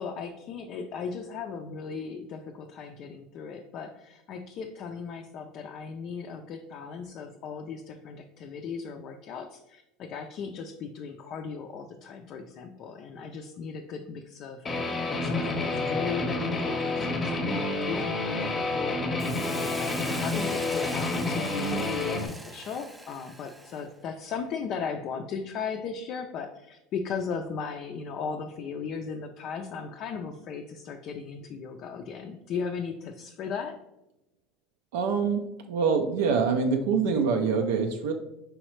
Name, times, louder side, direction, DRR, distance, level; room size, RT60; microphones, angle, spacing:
voice 1, 0.0-33.8, left 5 dB, 50° left, 3 dB, 0.3 m, -37 dB
Guitar, 14.7-22.3, left 2 dB, 25° left, 0.7 m, -29 dB
Hiss, 19.2-23.9, right 1 dB, 10° right, 0.4 m, -42 dB
voice 2, 34.9-38.1, right 5 dB, 85° right, 4 dB, 0.4 m, -25 dB
4.8 x 3.1 x 3.1 m, 0.89 s
supercardioid pair, 115°, 0 cm